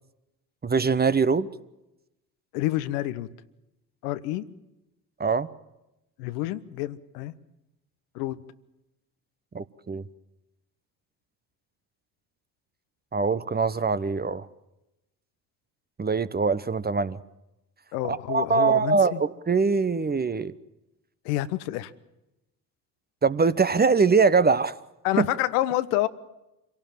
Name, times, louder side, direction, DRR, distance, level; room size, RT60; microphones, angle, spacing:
voice 1, 0.6-1.5 5.2-5.5 9.5-10.0 13.1-14.5 16.0-17.2 18.0-20.5 23.2-24.7 25.2-25.3, right 5 dB, 20° right, 15 dB, 1.0 m, -23 dB
voice 2, 2.5-3.3 4.0-4.5 6.2-7.3 8.1-8.4 17.9-19.2 21.2-21.9 25.0-26.1, left 15 dB, 70° left, 14 dB, 1.2 m, -28 dB
26.5 x 17.5 x 7.5 m, 0.93 s
figure-of-eight pair, 55°, 49 cm